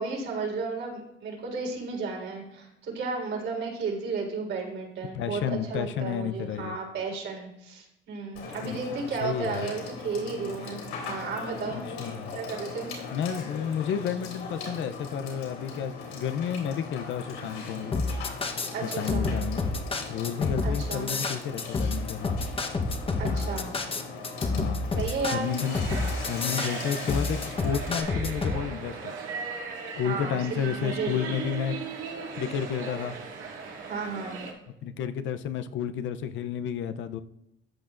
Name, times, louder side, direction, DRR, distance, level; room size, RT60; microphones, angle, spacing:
voice 1, 0.0-11.8 12.3-13.0 18.7-19.3 20.6-21.1 23.2-23.7 24.9-25.5 30.0-31.3 33.9-34.5, right 4 dB, 60° right, 0 dB, 4.0 m, -33 dB
voice 2, 5.1-6.8 8.6-8.8 9.2-9.7 11.7-12.4 13.1-18.0 19.0-19.7 20.1-22.4 24.5-24.9 25.3-29.1 30.0-31.8 32.3-33.2 34.8-37.2, left 8 dB, 70° left, 10 dB, 0.6 m, -31 dB
Water / Water tap faucet / Sink (filling or washing), 8.3-28.0, left 4 dB, 90° left, 3.3 m, -40 dB
sound 1, 17.9-28.6, left 3 dB, 25° left, 1.0 m, -29 dB
sound 2, 25.6-34.5, right 4 dB, 80° right, 2.4 m, -38 dB
14.0 x 8.7 x 2.5 m, 0.83 s
cardioid pair, 125°, 20 cm